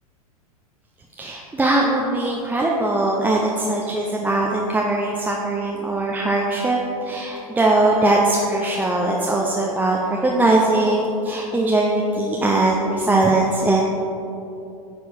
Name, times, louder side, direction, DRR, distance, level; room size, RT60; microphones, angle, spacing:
voice 1, 1.2-13.8, right 2 dB, 10° right, -2 dB, 0.7 m, -20 dB
9.3 x 4.4 x 5.1 m, 2.8 s
hypercardioid pair, 100°, 19 cm